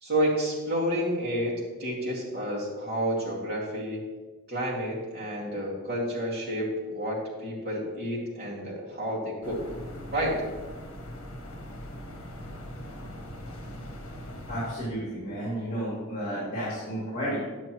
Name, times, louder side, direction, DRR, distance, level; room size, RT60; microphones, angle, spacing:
voice 1, 0.0-4.0 4.5-9.7 10.1-10.4, equal, 45° right, -5 dB, 2.2 m, -30 dB
sound 1, 9.4-14.8, equal, 65° left, 1.2 m, -41 dB
voice 2, 14.5-17.4, equal, 35° left, -7 dB, 2.5 m, -32 dB
9.3 x 7.5 x 3.0 m, 1.3 s
head